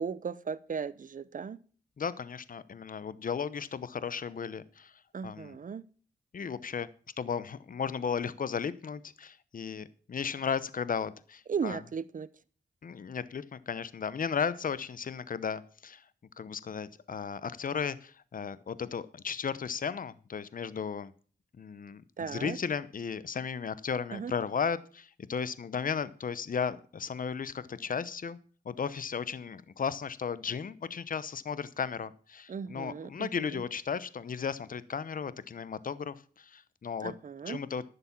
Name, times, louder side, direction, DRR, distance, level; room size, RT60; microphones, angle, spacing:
voice 1, 0.0-1.6 5.1-5.8 11.5-12.3 22.2-22.6 24.1-24.3 32.5-33.6 37.0-37.6, right 6 dB, 50° right, 0.8 m, -36 dB
voice 2, 2.0-4.9 5.2-5.6 6.3-6.9 7.2-11.8 12.8-16.0 16.4-21.1 21.6-28.4 28.6-37.1 37.5-37.8, left 6 dB, 50° left, 0.8 m, -35 dB
11.0 x 6.9 x 7.2 m
cardioid pair, 50°, 17 cm